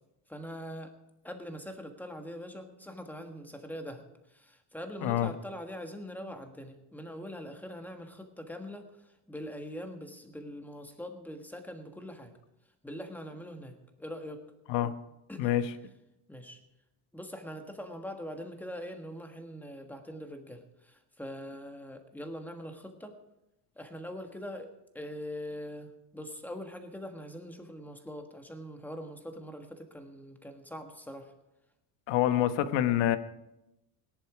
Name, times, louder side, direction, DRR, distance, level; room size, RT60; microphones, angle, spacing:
voice 1, 0.3-0.9 1.2-4.0 4.3-8.9 9.3-12.3 12.8-14.4 15.3-15.6 16.3-16.6 17.1-23.2 23.8-31.3, equal, 5° left, 5 dB, 1.4 m, -42 dB
voice 2, 15.4-15.7 32.1-33.2, left 12 dB, 85° left, 11 dB, 1.2 m, -26 dB
18.5 x 10.5 x 4.9 m, 0.90 s
cardioid pair, 150°, 43 cm